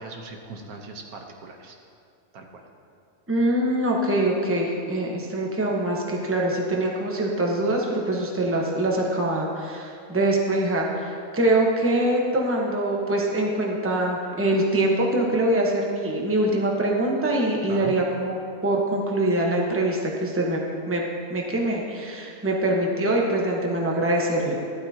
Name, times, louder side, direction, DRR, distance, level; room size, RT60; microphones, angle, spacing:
voice 1, 0.0-1.7 2.3-2.6 17.7-17.9, right 4 dB, 85° right, 3 dB, 1.5 m, -39 dB
voice 2, 3.3-20.6 20.9-21.0 21.3-24.6, right 1 dB, 10° right, -1 dB, 1.0 m, -24 dB
12.5 x 11.5 x 2.9 m, 2.4 s
omnidirectional pair, 1.5 m